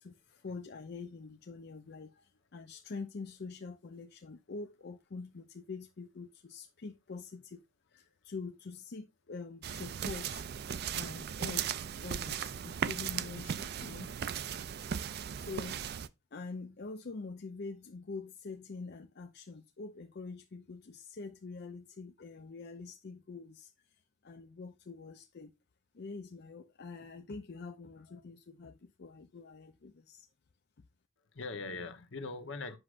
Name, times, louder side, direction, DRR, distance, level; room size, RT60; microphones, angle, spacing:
voice 1, 0.0-7.6 7.9-11.7 12.0-14.2 15.4-15.9 16.3-23.7 24.2-25.5 25.9-30.3, left 4 dB, 55° left, 0.5 m, -45 dB
sound 1, 9.6-16.1, right 8 dB, 55° right, 0.4 m, -37 dB
voice 2, 31.3-32.8, left 3 dB, 75° left, 1.1 m, -42 dB
7.8 x 6.2 x 2.5 m
head